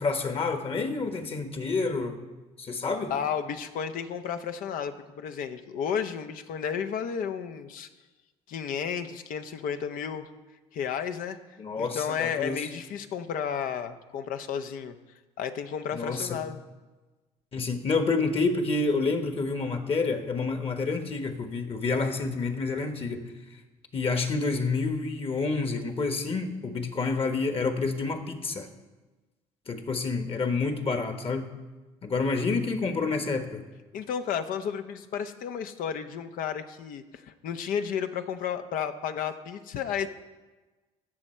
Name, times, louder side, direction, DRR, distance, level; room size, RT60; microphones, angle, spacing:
voice 1, 0.0-2.2 2.6-3.1 11.6-12.6 15.9-16.4 17.5-23.3 23.9-28.7 29.7-31.5 32.0-33.6, left 4 dB, 40° left, 7 dB, 1.4 m, -28 dB
voice 2, 3.1-7.9 8.5-10.3 10.7-11.4 11.8-14.9 15.4-16.6 33.9-40.1, left 7 dB, 65° left, 9 dB, 0.8 m, -32 dB
15.0 x 6.3 x 4.4 m, 1.2 s
hypercardioid pair, 65°, 15 cm